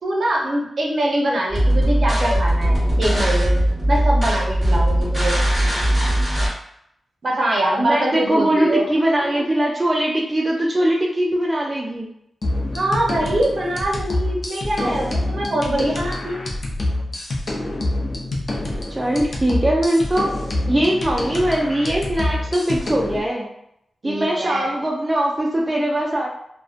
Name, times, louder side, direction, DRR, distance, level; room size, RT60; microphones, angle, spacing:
voice 1, 0.0-3.6 3.9-5.4 7.2-8.9 9.3-9.4 12.7-16.5 24.0-24.7, right 1 dB, 55° right, -1 dB, 0.6 m, -23 dB
sound 1, 1.5-6.5, right 1 dB, 5° right, 1.2 m, -19 dB
voice 2, 7.8-12.1 14.8-15.1 18.9-20.3 20.7-23.5 24.0-26.3, right 1 dB, 20° right, -2 dB, 0.3 m, -21 dB
sound 2, 12.4-23.2, left 1 dB, 50° left, 0.5 m, -26 dB
2.5 x 2.1 x 2.4 m, 0.77 s
wide cardioid pair, 95°, 0 cm